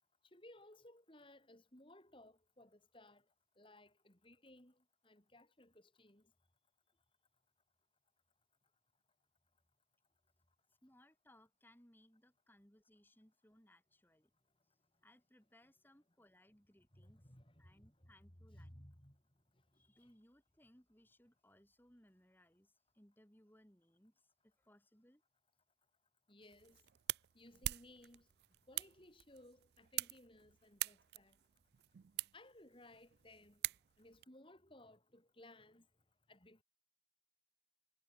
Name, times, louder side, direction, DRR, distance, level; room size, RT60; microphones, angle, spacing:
voice 1, 0.3-3.3 3.6-6.3 16.9-18.1 18.5-19.2 19.5-20.1 26.3-26.8 27.3-28.3 28.7-31.4 32.3-33.6 34.0-35.9 36.3-36.6, left 1 dB, 30° left, 4.3 m, -61 dB
voice 2, 10.8-14.3 15.0-17.3 17.6-18.8 19.7-25.2, left 1 dB, 10° left, 3.0 m, -68 dB
sound 1, 26.4-34.2, right 16 dB, 60° right, 0.3 m, -45 dB
head